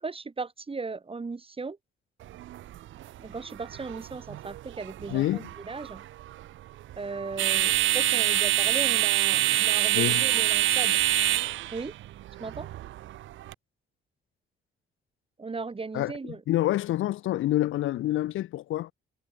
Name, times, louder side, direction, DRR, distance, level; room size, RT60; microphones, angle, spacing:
voice 1, 0.0-1.8 3.2-6.0 7.0-11.0 11.7-11.9 12.4-12.7 15.4-16.4, right 4 dB, 30° right, 5.9 m, -37 dB
sound 1, 2.2-13.5, right 14 dB, 75° right, 1.0 m, -27 dB
voice 2, 5.1-5.5 9.9-10.2 15.9-18.9, left 14 dB, 85° left, 6.4 m, -27 dB
cardioid pair, 90°, 20 cm